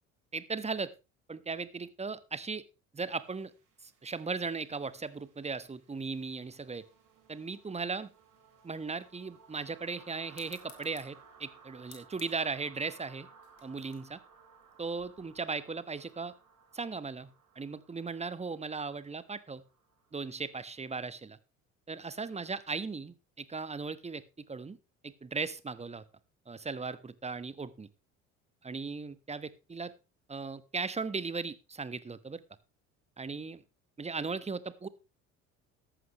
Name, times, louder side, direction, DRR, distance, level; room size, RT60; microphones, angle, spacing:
voice 1, 0.3-0.9 1.3-2.6 2.9-3.5 3.8-6.8 7.3-8.1 8.6-13.3 13.6-14.2 14.8-16.3 16.7-19.6 20.1-21.4 21.9-24.8 25.0-26.0 26.5-27.9 28.6-29.9 30.3-32.4 33.2-33.6 34.0-34.9, right 4 dB, 15° right, 16 dB, 1.1 m, -37 dB
sound 1, 3.1-20.9, right 5 dB, 50° right, 4.9 m, -60 dB
sound 2, 10.3-15.4, left 9 dB, 60° left, 3.2 m, -59 dB
14.5 x 11.0 x 3.0 m, 0.28 s
figure-of-eight pair, 60°, 39 cm